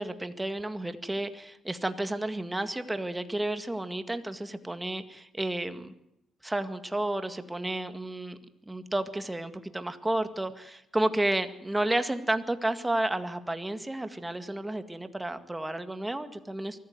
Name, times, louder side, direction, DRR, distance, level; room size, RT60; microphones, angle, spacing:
voice 1, 0.0-5.9 6.4-8.4 8.7-16.8, right 1 dB, 10° right, 9 dB, 1.9 m, -31 dB
23.5 x 14.0 x 9.5 m, 0.82 s
cardioid pair, 90°, 0 cm